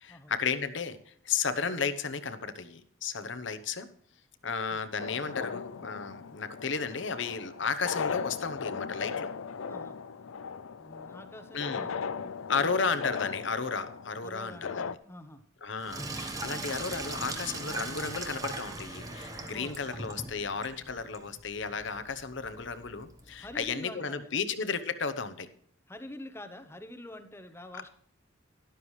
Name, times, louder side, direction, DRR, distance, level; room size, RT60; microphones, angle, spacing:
voice 1, 0.0-3.9 4.4-9.3 11.5-11.8 12.5-14.8 15.6-25.5, left 5 dB, 60° left, 11 dB, 0.9 m, -33 dB
sound 1, 5.0-15.0, left 6 dB, 85° left, 0.5 m, -38 dB
voice 2, 9.6-10.0 10.8-12.3 12.8-12.9 14.2-15.4 19.5-19.8 23.4-24.4 25.9-27.9, left 1 dB, 10° left, 8 dB, 0.9 m, -46 dB
Sink (filling or washing), 15.8-23.6, right 2 dB, 15° right, 1.2 m, -40 dB
12.5 x 12.0 x 3.2 m, 0.64 s
head